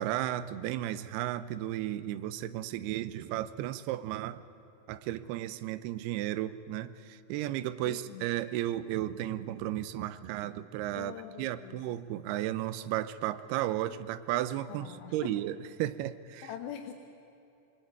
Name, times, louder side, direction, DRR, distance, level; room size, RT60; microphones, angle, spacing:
voice 1, 0.0-4.4 4.9-16.5, right 13 dB, 75° right, 14 dB, 2.5 m, -34 dB
voice 2, 7.9-8.3 11.0-12.0 14.7-15.4 16.4-16.9, left 10 dB, 75° left, 4 dB, 3.2 m, -43 dB
25.5 x 21.5 x 9.4 m, 2.9 s
omnidirectional pair, 5.2 m